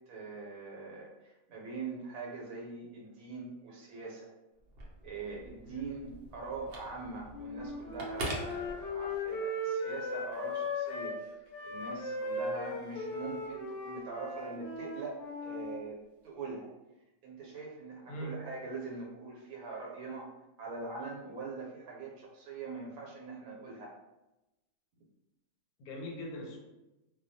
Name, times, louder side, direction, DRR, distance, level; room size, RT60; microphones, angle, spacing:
voice 1, 0.0-4.3 5.0-16.0 16.2-16.7 17.2-20.3 20.6-23.9, right 4 dB, 90° right, -2 dB, 1.1 m, -43 dB
Telephone, 4.6-9.4, right 1 dB, 65° right, 0.6 m, -43 dB
Wind instrument woodwind instrument, 7.3-11.2 11.5-15.8, left 2 dB, 70° left, 0.5 m, -37 dB
voice 2, 18.1-18.5 25.8-26.6, equal, 90° left, 0 dB, 1.1 m, -41 dB
2.2 x 2.2 x 2.6 m, 0.98 s
omnidirectional pair, 1.5 m